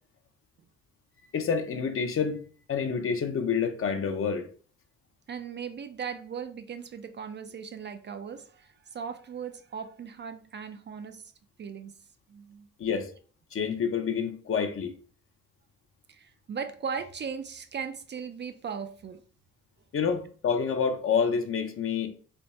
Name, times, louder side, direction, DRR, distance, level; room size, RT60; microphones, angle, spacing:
voice 1, 1.3-2.4 2.7-4.5 12.8-13.1 13.5-14.9 19.9-22.1, left 6 dB, 45° left, 0.7 m, -28 dB
voice 2, 5.3-11.3 11.6-12.0 12.3-12.7 16.1-19.2, right 6 dB, 35° right, 0.4 m, -38 dB
3.5 x 2.2 x 4.0 m
cardioid pair, 90°, 30 cm